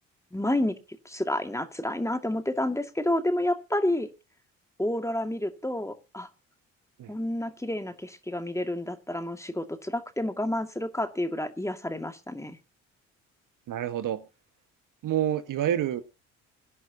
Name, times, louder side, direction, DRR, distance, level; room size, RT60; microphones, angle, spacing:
voice 1, 0.3-0.8 1.0-4.1 4.8-6.3 7.1-12.6, left 1 dB, 10° left, 2.1 m, -29 dB
voice 2, 13.7-14.3 15.0-16.0, right 11 dB, 55° right, 1.5 m, -28 dB
23.0 x 10.5 x 2.8 m
hypercardioid pair, 50°, 37 cm